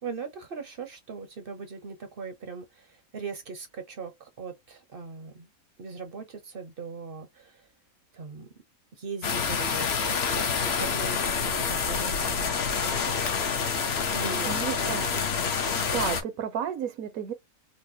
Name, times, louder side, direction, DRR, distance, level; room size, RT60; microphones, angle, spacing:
voice 1, 0.0-5.5 5.8-7.7 8.1-8.5 8.9-13.7 14.1-14.9, right 5 dB, 50° right, 0.7 m, -40 dB
sound 1, 9.2-16.2, left 6 dB, 55° left, 0.8 m, -27 dB
voice 2, 14.5-15.2 15.6-17.3, right 8 dB, 75° right, 1.1 m, -33 dB
4.1 x 2.2 x 2.7 m
omnidirectional pair, 1.5 m